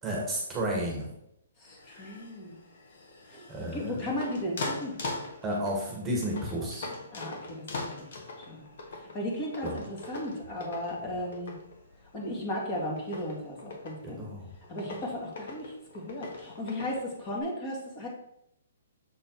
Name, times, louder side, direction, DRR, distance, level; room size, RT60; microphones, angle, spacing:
voice 1, 0.0-1.1 3.5-4.1 5.4-6.8 9.6-9.8 14.0-14.5, right 1 dB, 10° right, -2 dB, 1.5 m, -32 dB
voice 2, 1.6-2.6 3.3-5.0 7.1-7.6 8.0-8.1 8.5-8.6 9.1-11.5 12.1-14.3 14.7-18.1, left 1 dB, 25° left, -2 dB, 1.9 m, -35 dB
sound 1, 1.7-17.4, left 2 dB, 60° left, 1.6 m, -42 dB
6.8 x 4.1 x 4.6 m, 0.78 s
hypercardioid pair, 155°, 0 cm